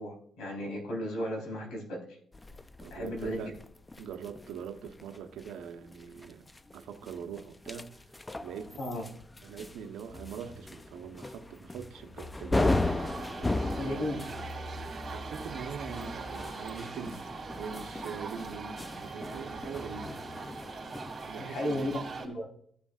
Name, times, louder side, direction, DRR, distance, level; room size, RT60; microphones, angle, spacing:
voice 1, 0.0-2.2 2.9-3.5 8.8-9.0 13.8-14.2 21.4-22.4, left 1 dB, 85° left, 3.8 m, -35 dB
sound 1, 2.3-21.3, left 2 dB, 15° left, 0.5 m, -37 dB
voice 2, 2.8-3.5 4.0-6.5 6.7-8.0 8.4-8.8 9.4-13.0 13.3-14.2 14.8-17.3 17.6-20.1 21.1-22.0, right 7 dB, 80° right, 0.9 m, -42 dB
sound 2, 12.5-22.3, right 4 dB, 35° right, 2.6 m, -41 dB
14.5 x 7.1 x 2.4 m
cardioid pair, 90°, 0 cm